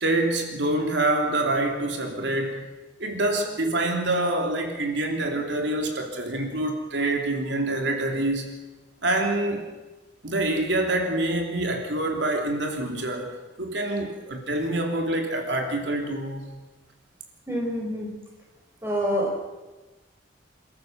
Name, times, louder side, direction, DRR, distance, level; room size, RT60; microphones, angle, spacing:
voice 1, 0.0-2.6 3.0-8.5 9.0-9.6 10.2-13.3 13.6-16.5, right 2 dB, 85° right, 3 dB, 3.2 m, -26 dB
voice 2, 17.5-18.1 18.8-19.5, equal, 15° right, 0 dB, 5.4 m, -27 dB
28.0 x 14.0 x 7.5 m, 1.2 s
head